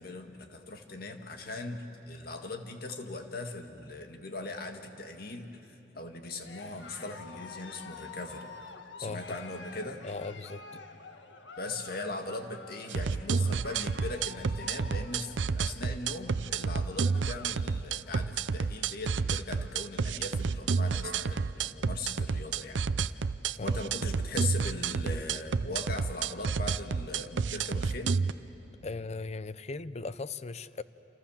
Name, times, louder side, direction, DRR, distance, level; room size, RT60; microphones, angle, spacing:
voice 1, 0.0-5.5 5.9-8.5 9.0-10.0 11.6-22.8 23.6-28.2, left 2 dB, 55° left, 5 dB, 1.9 m, -39 dB
Cheering, 6.3-17.6 17.9-18.3 18.7-18.8 19.0-19.9, left 4 dB, 80° left, 1.5 m, -49 dB
voice 2, 9.0-9.4 10.0-10.6 23.5-23.8 28.8-30.8, left 3 dB, 35° left, 15 dB, 0.6 m, -38 dB
sound 1, 12.9-28.3, right 5 dB, 85° right, 0.6 m, -30 dB
29.0 x 28.0 x 7.3 m, 2.9 s
head